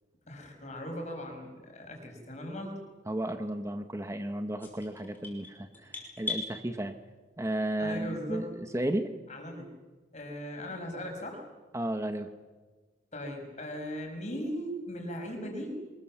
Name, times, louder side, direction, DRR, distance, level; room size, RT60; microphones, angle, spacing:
voice 1, 0.3-2.8 7.8-8.5 9.3-9.7 10.1-11.4 13.1-15.8, equal, 40° left, 3 dB, 5.5 m, -38 dB
voice 2, 3.1-6.9 7.4-9.1 11.7-12.3, right 1 dB, 15° right, 8 dB, 1.0 m, -33 dB
sound 1, 4.6-6.5, left 3 dB, 10° left, 5.5 m, -38 dB
24.5 x 21.0 x 7.4 m, 1.3 s
head